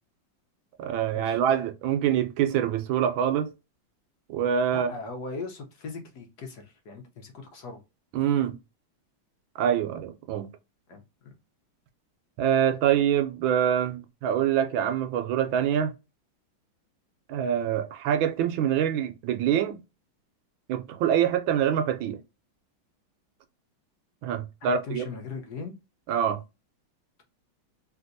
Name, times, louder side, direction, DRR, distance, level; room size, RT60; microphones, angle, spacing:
voice 1, 0.8-3.5 4.3-4.9 8.1-8.6 9.6-10.5 12.4-15.9 17.3-19.8 20.7-22.2 24.2-25.1 26.1-26.4, right 9 dB, 80° right, 1.3 m, -25 dB
voice 2, 4.7-7.8 10.9-11.4 24.6-25.7, left 4 dB, 60° left, 1.2 m, -39 dB
3.4 x 2.8 x 2.5 m
omnidirectional pair, 2.2 m